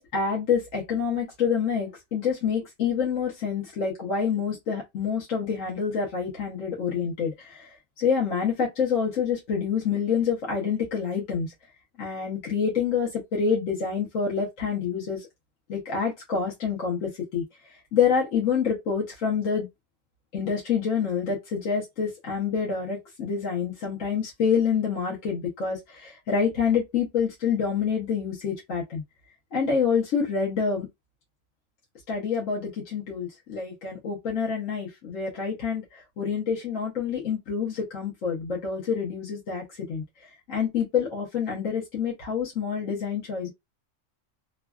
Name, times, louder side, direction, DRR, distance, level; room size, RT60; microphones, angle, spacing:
voice 1, 0.0-7.7 8.0-11.5 12.0-15.3 15.7-17.4 17.9-19.7 20.3-29.0 29.5-30.9 32.1-40.0 40.5-43.5, left 6 dB, 75° left, 1.3 m, -27 dB
3.1 x 2.3 x 2.3 m
omnidirectional pair, 1.4 m